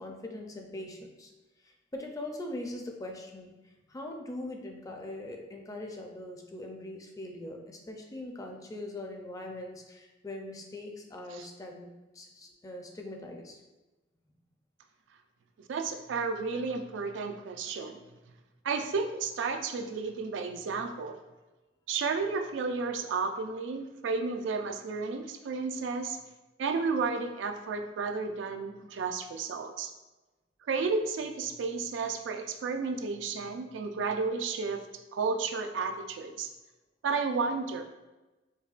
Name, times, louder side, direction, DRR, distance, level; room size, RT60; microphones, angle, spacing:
voice 1, 0.0-1.3 1.6-11.9 12.1-13.6, left 1 dB, 20° left, 2 dB, 0.4 m, -41 dB
voice 2, 15.7-18.0 18.6-21.2 21.9-26.2 26.6-29.9 30.7-34.8 35.1-36.5 37.0-37.8, right 4 dB, 75° right, 6 dB, 0.3 m, -32 dB
5.4 x 2.1 x 2.4 m, 1.1 s
head